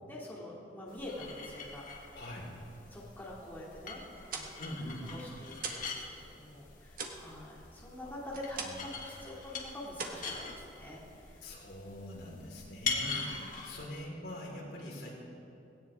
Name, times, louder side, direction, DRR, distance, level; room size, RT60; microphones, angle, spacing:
voice 1, 0.1-2.2 2.9-4.0 4.3-4.6 5.1-5.5 5.9-11.5 13.1-13.4, left 1 dB, 10° left, -6 dB, 2.5 m, -46 dB
sound 1, 0.9-13.9, left 4 dB, 45° left, 2.1 m, -43 dB
voice 2, 2.1-2.5 4.6-5.1 8.0-8.1 8.6-8.8 11.4-15.1, left 1 dB, 65° left, -4 dB, 4.4 m, -43 dB
sound 2, 4.1-6.0 6.3-9.0 9.3-9.6 9.9-11.0, right 4 dB, 50° right, 1.6 m, -43 dB
19.0 x 17.5 x 3.6 m, 2.6 s
head